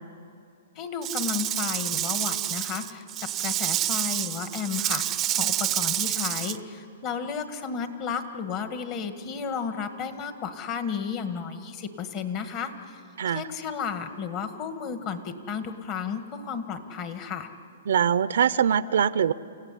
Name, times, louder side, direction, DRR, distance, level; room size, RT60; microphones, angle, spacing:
voice 1, 0.8-13.0 13.3-17.5, left 6 dB, 35° left, 8 dB, 1.7 m, -33 dB
Rattle / Rattle (instrument), 1.0-6.6, right 13 dB, 25° right, 0.6 m, -28 dB
voice 2, 17.9-19.3, right 8 dB, 70° right, 16 dB, 0.6 m, -22 dB
29.0 x 15.5 x 9.9 m, 2.6 s
hypercardioid pair, 145°, 0 cm